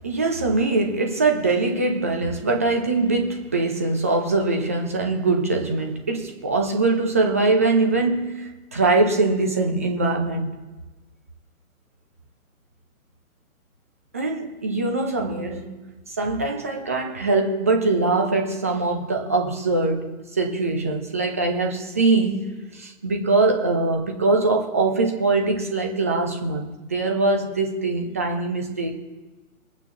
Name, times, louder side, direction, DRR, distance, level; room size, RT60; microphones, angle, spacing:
voice 1, 0.0-10.5 14.1-15.8 16.1-28.9, right 3 dB, 10° right, 0.5 m, -22 dB
21.5 x 8.9 x 2.9 m
figure-of-eight pair, 140°, 42 cm